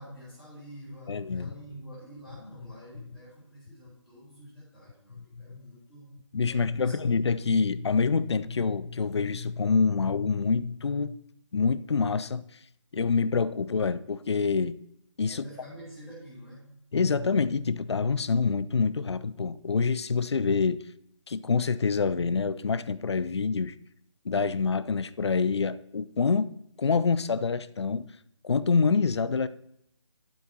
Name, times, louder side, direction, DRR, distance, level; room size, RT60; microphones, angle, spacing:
voice 1, 0.0-6.1 6.4-7.1 15.2-16.7, equal, ahead, 3.5 m, -47 dB
voice 2, 1.1-1.5 5.2-5.6 6.3-11.2 11.5-12.4 12.9-14.8 15.2-15.4 16.9-20.8 21.3-23.7 24.3-26.5 26.8-28.1 28.4-29.5, left 5 dB, 60° left, 0.4 m, -26 dB
12.0 x 8.1 x 2.9 m
figure-of-eight pair, 155°, 16 cm